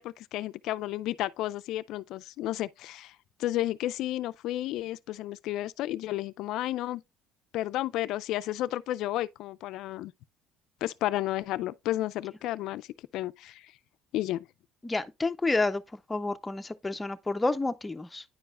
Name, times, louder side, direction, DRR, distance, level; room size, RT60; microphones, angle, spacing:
voice 1, 0.0-7.0 7.5-10.1 10.8-12.9 13.1-13.7 14.1-14.5, left 14 dB, 70° left, 0.3 m, -32 dB
voice 2, 14.8-18.2, left 2 dB, 15° left, 0.5 m, -30 dB
9.7 x 4.7 x 2.3 m
supercardioid pair, 90°, 0 cm